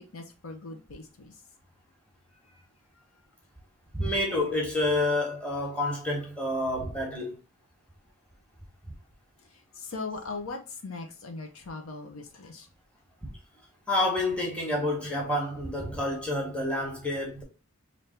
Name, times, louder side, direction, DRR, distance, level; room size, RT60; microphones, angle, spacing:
voice 1, 0.0-1.4 2.3-2.7 9.4-12.7, left 3 dB, 80° left, 0.8 m, -40 dB
voice 2, 3.9-7.3 13.9-17.4, left 1 dB, 5° left, 1.1 m, -28 dB
3.4 x 2.7 x 4.2 m
head